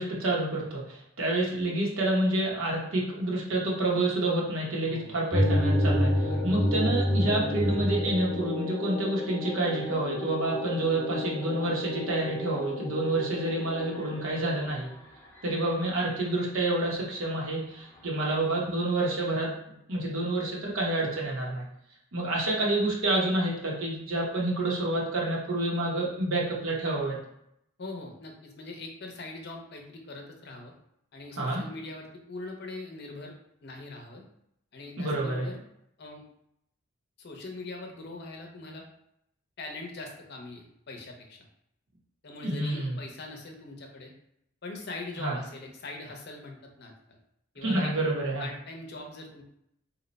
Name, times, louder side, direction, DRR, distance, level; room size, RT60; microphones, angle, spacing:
voice 1, 0.0-14.9 15.4-21.6 22.1-27.2 31.4-31.6 35.0-35.5 42.4-43.0 45.2-45.4 47.6-48.5, right 2 dB, 75° right, -4 dB, 0.9 m, -28 dB
sound 1, 5.3-14.7, left 1 dB, 10° left, 0.7 m, -29 dB
voice 2, 27.8-30.7 31.1-33.3 33.6-34.2 34.7-35.6 36.0-36.2 37.2-38.8 39.6-41.4 42.2-44.1 44.6-47.2 47.5-47.9 48.4-49.4, left 2 dB, 50° left, 2 dB, 0.6 m, -42 dB
2.8 x 2.1 x 3.9 m, 0.77 s
head